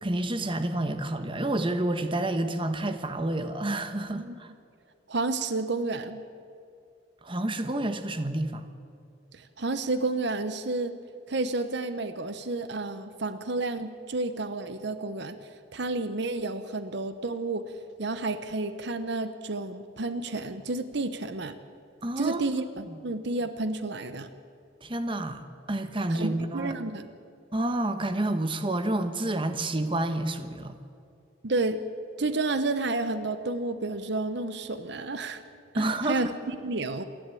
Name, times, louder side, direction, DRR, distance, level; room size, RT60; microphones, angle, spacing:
voice 1, 0.0-4.5 7.2-8.7 22.0-22.4 22.9-23.0 24.8-26.8 27.5-30.8 35.7-36.3, right 1 dB, 25° right, 8 dB, 1.1 m, -29 dB
voice 2, 5.1-6.2 9.3-10.9 11.3-15.4 15.7-17.6 18.0-21.5 22.2-24.3 26.1-27.1 31.4-31.8 32.2-35.4 35.7-37.0, right 2 dB, 60° right, 11 dB, 0.9 m, -31 dB
27.5 x 11.5 x 8.4 m, 2.4 s
head